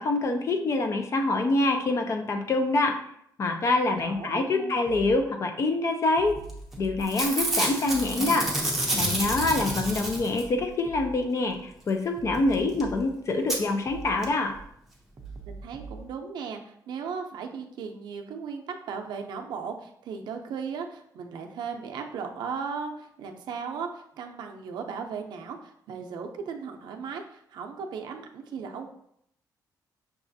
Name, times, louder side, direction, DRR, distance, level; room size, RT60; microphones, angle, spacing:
voice 1, 0.0-3.0 3.4-6.4 6.8-8.5 9.0-14.5, left 2 dB, 40° left, 5 dB, 0.5 m, -25 dB
voice 2, 3.9-4.8 15.5-28.9, right 6 dB, 85° right, 3 dB, 0.5 m, -37 dB
sound 1, 4.9-5.2 6.2-7.0 7.9-8.2 9.2-10.1 10.9-11.2 12.2-13.1 13.9-14.2 15.2-16.1, right 4 dB, 35° right, 0.5 m, -41 dB
Packing tape duct tape / Tearing, 6.5-6.7 7.0-10.6 12.5-12.6 12.8-12.9 13.5-13.6 14.2-14.3 14.5-14.6, right 1 dB, 5° right, 0.7 m, -28 dB
5.9 x 2.4 x 2.6 m, 0.72 s
cardioid pair, 145°, 7 cm